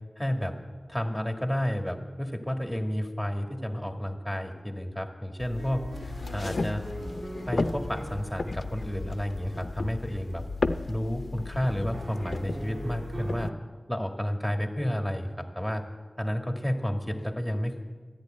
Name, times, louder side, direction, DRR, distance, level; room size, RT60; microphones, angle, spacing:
voice 1, 0.2-0.6 0.9-6.8 7.5-10.4 10.9-13.5 13.9-15.8 16.2-17.8, equal, 5° left, 4 dB, 1.8 m, -31 dB
sound 1, 5.4-13.5, left 3 dB, 70° left, 0.6 m, -34 dB
sound 2, 5.6-10.5 11.9-13.5, right 1 dB, 75° right, 1.9 m, -42 dB
13.5 x 11.0 x 8.9 m, 1.4 s
wide cardioid pair, 70°, 0 cm